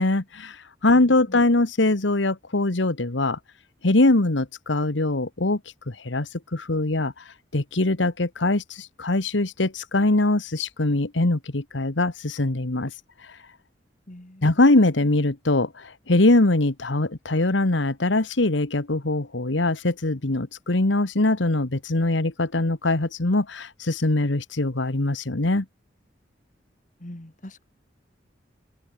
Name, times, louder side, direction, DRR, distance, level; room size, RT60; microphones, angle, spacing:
voice 1, 0.0-3.4 3.8-5.6 5.9-12.9 13.2-13.4 14.4-25.6, left 2 dB, 80° left, 1.5 m, -22 dB
voice 2, 0.9-1.4 14.1-14.4 27.0-27.6, left 1 dB, 45° left, 2.1 m, -42 dB
open air
head